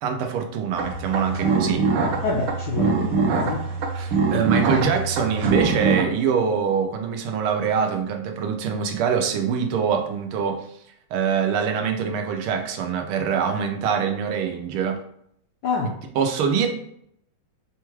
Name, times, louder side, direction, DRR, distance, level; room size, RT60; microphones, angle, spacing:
voice 1, 0.0-1.9 3.9-10.7 11.1-15.0 15.8-16.7, right 6 dB, 90° right, 5 dB, 1.5 m, -24 dB
sound 1, 0.8-6.0, right 4 dB, 70° right, 1.1 m, -23 dB
voice 2, 2.2-3.7 15.6-16.0, left 4 dB, 80° left, 0 dB, 0.9 m, -27 dB
5.5 x 2.3 x 3.1 m, 0.71 s
omnidirectional pair, 2.3 m